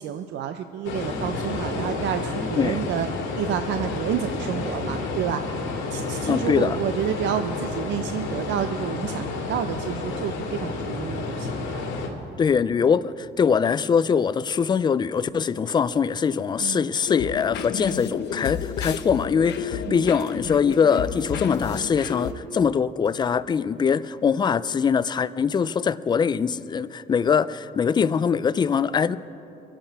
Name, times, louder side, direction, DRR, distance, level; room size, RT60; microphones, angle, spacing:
voice 1, 0.0-3.1 3.4-5.4 5.9-11.9 16.6-16.9 19.9-20.0, right 9 dB, 65° right, 0.6 m, -29 dB
sound 1, 0.8-12.1, left 3 dB, 80° left, 2.5 m, -30 dB
voice 2, 6.3-6.8 12.4-29.2, left 6 dB, 20° left, 0.3 m, -22 dB
sound 2, 17.1-22.3, left 8 dB, 60° left, 0.8 m, -31 dB
24.0 x 8.8 x 4.6 m
cardioid pair, 125°, 20 cm